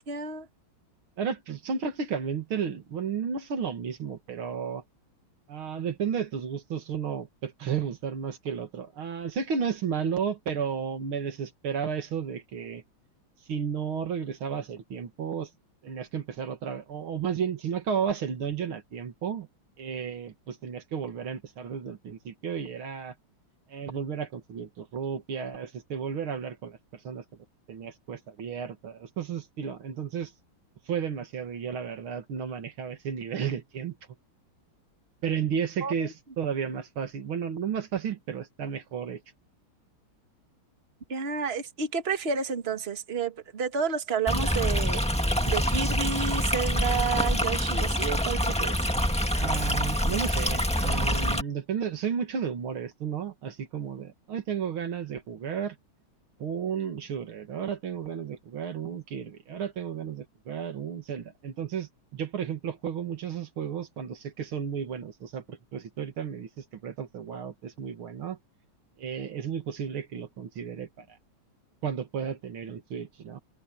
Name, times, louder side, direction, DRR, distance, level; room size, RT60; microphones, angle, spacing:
voice 1, 0.1-0.5 35.8-35.9 41.1-48.8, right 6 dB, 30° right, 1.9 m, -30 dB
voice 2, 1.2-4.8 5.5-12.8 13.5-15.5 15.8-19.5 19.8-23.1 23.7-27.2 27.7-30.3 30.9-33.9 35.2-39.2 49.4-55.8 56.4-68.4 69.0-71.1 71.8-73.4, right 7 dB, 85° right, 2.8 m, -33 dB
Stream, 44.3-51.4, equal, 5° left, 1.7 m, -26 dB
omnidirectional pair, 2.2 m